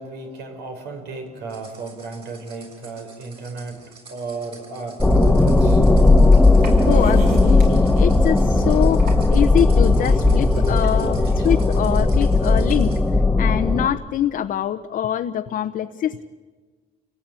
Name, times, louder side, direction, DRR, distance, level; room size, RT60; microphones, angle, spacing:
voice 1, 0.0-5.8 11.4-11.5, right 3 dB, 75° right, 4 dB, 5.6 m, -34 dB
sound 1, 1.5-13.1, right 3 dB, 35° right, 7.4 m, -47 dB
sound 2, 5.0-13.9, left 2 dB, 5° left, 1.4 m, -16 dB
sound 3, 5.4-12.8, right 4 dB, 55° right, 7.7 m, -43 dB
voice 2, 6.9-12.9 13.4-16.2, left 10 dB, 55° left, 5 dB, 1.0 m, -24 dB
29.5 x 18.0 x 9.0 m, 1.4 s
cardioid pair, 110°, 17 cm